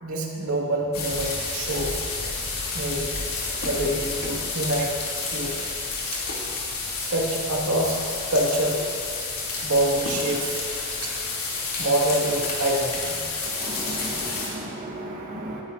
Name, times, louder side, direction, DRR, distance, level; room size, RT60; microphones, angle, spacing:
voice 1, 0.0-2.0 2.7-3.2 3.6-4.9 5.3-5.6 6.1-6.2 7.0-8.0 8.3-8.9 9.6-10.6 11.0-11.1 11.8-13.2, right 1 dB, 85° right, -3 dB, 2.1 m, -26 dB
sound 1, 0.9-14.5, left 3 dB, 75° left, 2.9 m, -30 dB
voice 2, 13.6-15.6, right 1 dB, 40° right, -4 dB, 1.3 m, -35 dB
19.0 x 10.5 x 2.7 m, 2.3 s
head